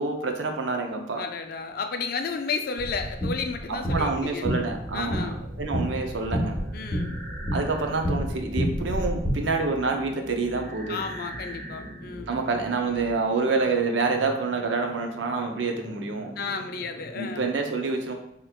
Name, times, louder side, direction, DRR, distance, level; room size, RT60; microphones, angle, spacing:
voice 1, 0.0-1.2 3.7-5.3 5.6-6.6 7.5-11.0 12.3-16.3 17.2-18.1, right 4 dB, 90° right, 4 dB, 0.6 m, -27 dB
voice 2, 1.0-4.5 4.9-5.4 6.7-7.2 10.9-12.3 16.4-17.5, left 5 dB, 55° left, 6 dB, 0.4 m, -32 dB
sound 1, 2.8-9.3, equal, 5° left, 0.9 m, -30 dB
sound 2, 4.7-17.4, right 1 dB, 40° right, 1.2 m, -41 dB
4.9 x 2.9 x 2.3 m, 0.77 s
head